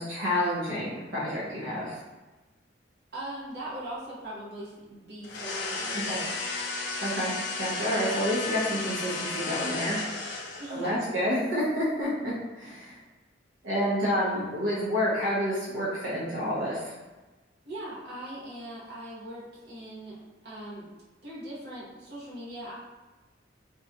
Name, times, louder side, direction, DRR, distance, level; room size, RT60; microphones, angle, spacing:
voice 1, 0.0-2.0 6.0-6.2 7.0-7.3 7.6-10.0 10.7-13.0 13.6-16.9, equal, 85° right, -7 dB, 0.6 m, -29 dB
voice 2, 3.1-6.4 10.6-11.0 17.6-20.9 21.2-22.7, right 1 dB, 60° right, -7 dB, 0.9 m, -40 dB
sound 1, 5.2-10.9, left 3 dB, 70° left, 0.4 m, -33 dB
2.7 x 2.2 x 2.5 m, 1.2 s
head